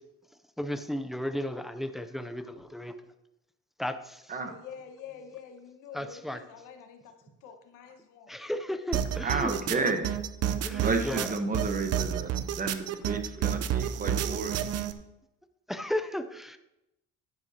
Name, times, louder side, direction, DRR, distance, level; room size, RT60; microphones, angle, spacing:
voice 1, 0.6-3.0 3.8-4.3 5.9-6.4 8.3-9.9 10.6-11.3 15.7-16.6, left 1 dB, ahead, 9 dB, 0.4 m, -34 dB
voice 2, 4.4-7.2 7.4-8.3, left 8 dB, 85° left, 6 dB, 1.3 m, -47 dB
sound 1, 8.9-14.9, right 10 dB, 55° right, 0.7 m, -30 dB
voice 3, 9.2-10.1 10.8-14.6, right 4 dB, 25° right, 6 dB, 1.1 m, -31 dB
10.5 x 9.9 x 2.8 m, 0.90 s
cardioid pair, 125°, 31 cm